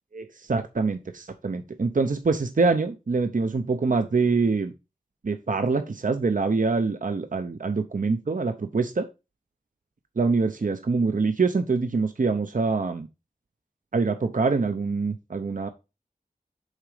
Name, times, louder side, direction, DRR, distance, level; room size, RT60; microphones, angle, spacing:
voice 1, 0.1-4.7 5.2-9.1 10.2-13.1 13.9-15.7, right 4 dB, 65° right, 8 dB, 0.7 m, -25 dB
6.5 x 3.8 x 4.9 m, 0.27 s
wide cardioid pair, 40°, 15 cm